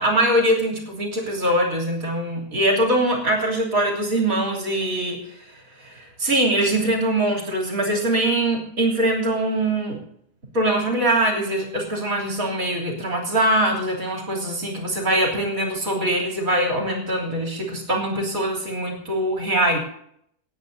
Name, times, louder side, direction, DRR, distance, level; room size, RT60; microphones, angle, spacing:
voice 1, 0.0-10.0 10.5-19.8, right 1 dB, 65° right, -1 dB, 3.7 m, -23 dB
27.0 x 9.3 x 2.8 m, 0.70 s
omnidirectional pair, 1.5 m